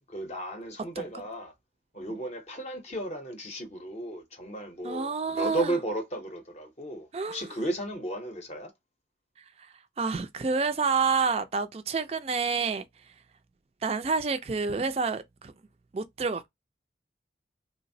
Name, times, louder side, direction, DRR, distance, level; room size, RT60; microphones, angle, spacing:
voice 1, 0.1-1.5 1.9-8.7, right 1 dB, 35° left, 0.6 m, -34 dB
voice 2, 4.8-5.7 7.1-7.4 10.0-12.8 13.8-15.5 15.9-16.5, right 5 dB, 35° right, 0.3 m, -28 dB
3.2 x 2.0 x 2.5 m
head